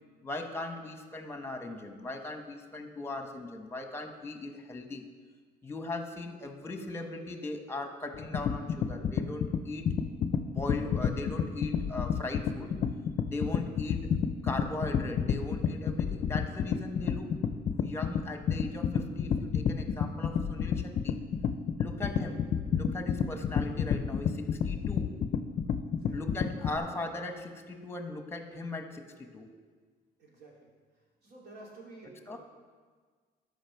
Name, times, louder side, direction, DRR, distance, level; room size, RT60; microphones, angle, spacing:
voice 1, 0.2-5.1 5.6-9.9 10.4-12.7 13.2-14.1 14.4-17.3 17.7-21.2 21.8-25.1 26.1-29.5 32.3-32.4, left 2 dB, 15° left, 6 dB, 1.0 m, -39 dB
sound 1, 8.1-26.8, left 7 dB, 45° left, 0.5 m, -30 dB
voice 2, 25.9-26.2 30.2-32.4, right 2 dB, 75° right, -3 dB, 2.7 m, -52 dB
13.5 x 5.2 x 4.6 m, 1.5 s
cardioid pair, 110°, 17 cm